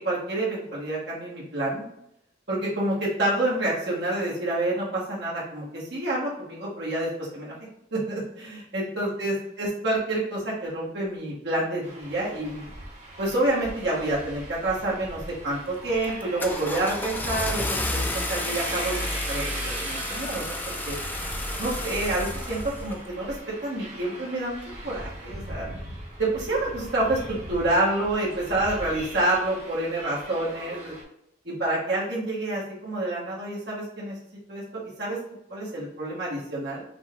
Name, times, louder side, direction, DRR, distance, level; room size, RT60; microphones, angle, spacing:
voice 1, 0.0-1.8 2.5-7.5 7.9-12.7 13.2-21.0 21.6-24.5 24.8-25.7 26.2-30.9 31.4-34.2 34.5-35.2 35.5-36.8, right 1 dB, 75° right, -6 dB, 1.3 m, -28 dB
sound 1, 11.8-31.0, right 1 dB, 40° right, 1.1 m, -39 dB
Car / Engine starting, 15.3-15.6 16.0-23.0, left 2 dB, 10° left, 0.3 m, -31 dB
5.6 x 2.2 x 3.5 m, 0.80 s
head